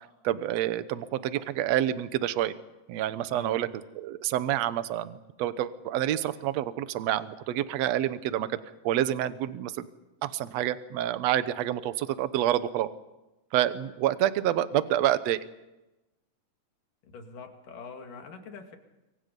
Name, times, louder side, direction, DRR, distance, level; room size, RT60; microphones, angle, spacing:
voice 1, 0.0-2.5 2.9-3.7 4.0-9.9 10.2-12.9 13.5-15.4, right 12 dB, 65° right, 13 dB, 1.9 m, -28 dB
voice 2, 3.3-3.7 17.0-18.8, left 4 dB, 75° left, 4 dB, 3.9 m, -44 dB
27.0 x 23.5 x 5.4 m, 1.0 s
omnidirectional pair, 3.8 m